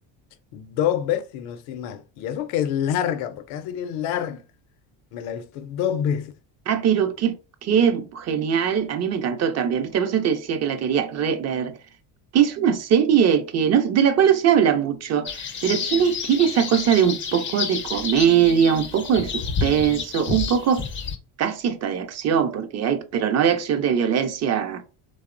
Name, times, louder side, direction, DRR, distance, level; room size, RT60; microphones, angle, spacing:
voice 1, 0.5-4.4 5.1-6.3, left 9 dB, 75° left, 0.6 m, -27 dB
voice 2, 6.7-7.3 7.6-11.7 12.3-20.8 21.4-24.8, right 8 dB, 35° right, 0.4 m, -21 dB
sound 1, 15.2-21.2, left 6 dB, 25° left, 0.4 m, -30 dB
2.8 x 2.0 x 2.4 m
supercardioid pair, 95°, 48 cm